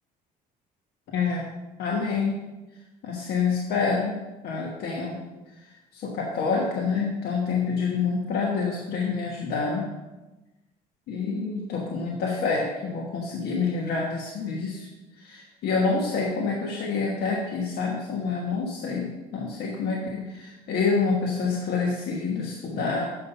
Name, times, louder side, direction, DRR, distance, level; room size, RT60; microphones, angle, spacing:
voice 1, 1.1-1.5 1.8-2.4 3.0-5.2 5.5-9.9 11.1-14.9 15.1-23.0, left 4 dB, 70° left, -1 dB, 1.3 m, -27 dB
7.8 x 5.5 x 5.4 m, 1.1 s
cardioid pair, 110°, 17 cm